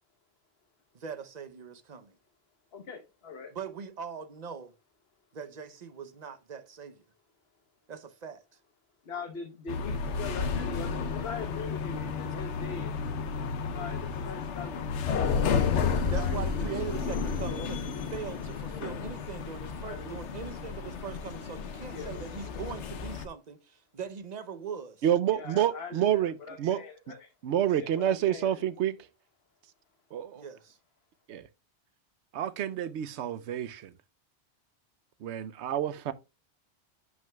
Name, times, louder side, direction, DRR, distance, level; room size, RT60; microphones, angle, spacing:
voice 1, 0.9-2.2 3.5-4.7 5.3-7.0 7.9-8.4 16.1-25.0 30.3-30.8, right 6 dB, 45° right, 0.8 m, -41 dB
voice 2, 2.7-3.5 9.0-13.0 13.7-14.9 15.6-17.0 17.4-17.7 18.7-19.0 19.8-20.5 21.9-22.7 25.3-27.3 27.8-28.6 30.1-30.2, left 5 dB, 65° left, 1.2 m, -42 dB
sound 1, 9.7-23.3, left 5 dB, 90° left, 1.1 m, -32 dB
voice 3, 25.0-26.8 27.4-29.0 30.1-30.4 31.3-31.5 32.3-33.9 35.2-36.1, right 10 dB, 80° right, 0.9 m, -28 dB
10.5 x 6.1 x 2.2 m
omnidirectional pair, 1.2 m